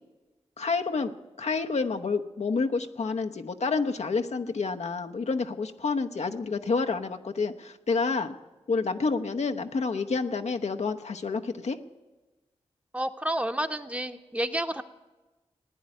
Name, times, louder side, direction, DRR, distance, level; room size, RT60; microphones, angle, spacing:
voice 1, 0.6-1.1 1.4-8.3 8.7-11.8, left 4 dB, 70° left, 6 dB, 0.9 m, -29 dB
voice 2, 12.9-14.8, right 1 dB, 10° right, 7 dB, 1.1 m, -30 dB
15.5 x 9.6 x 9.6 m, 1.1 s
cardioid pair, 40°, 12 cm